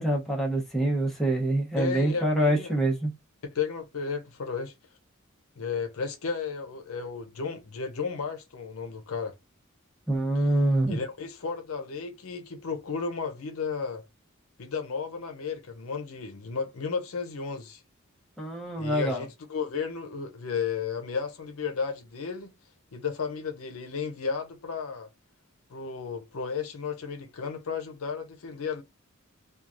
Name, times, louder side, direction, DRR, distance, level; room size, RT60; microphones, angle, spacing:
voice 1, 0.0-3.1 10.1-11.0 18.4-19.2, right 1 dB, ahead, 0.7 m, -25 dB
voice 2, 1.8-2.8 3.4-4.7 5.6-9.3 10.4-10.5 10.9-14.0 14.6-17.8 18.8-22.5 22.9-25.1 25.7-28.8, left 5 dB, 90° left, 0.6 m, -33 dB
3.0 x 2.3 x 2.5 m
head